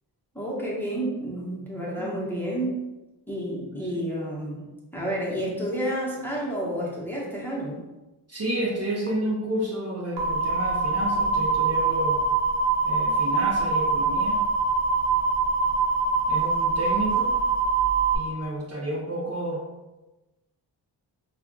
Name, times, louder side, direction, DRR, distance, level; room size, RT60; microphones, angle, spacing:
voice 1, 0.3-2.8 3.3-4.7 4.9-7.8, right 1 dB, 5° left, -5 dB, 1.0 m, -30 dB
voice 2, 1.8-2.1 3.7-3.9 8.3-12.2 12.8-14.4 16.3-17.3 18.1-19.6, right 1 dB, 30° right, -4 dB, 0.8 m, -30 dB
sound 1, 10.2-18.2, right 4 dB, 60° right, 0.8 m, -24 dB
3.4 x 2.4 x 2.3 m, 1.1 s
supercardioid pair, 45°, 49 cm